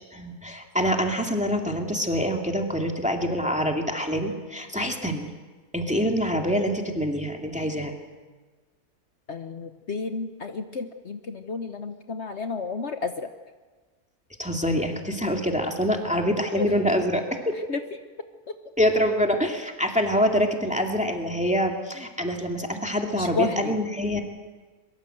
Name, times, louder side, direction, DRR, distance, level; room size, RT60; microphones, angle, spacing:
voice 1, 0.1-5.3 5.7-7.9 14.4-17.5 18.8-24.2, equal, 5° right, 2 dB, 2.3 m, -25 dB
voice 2, 9.3-13.3 16.5-16.7 17.7-17.8 23.1-23.7, left 4 dB, 50° left, 7 dB, 1.3 m, -31 dB
23.0 x 23.0 x 7.9 m, 1.3 s
omnidirectional pair, 1.6 m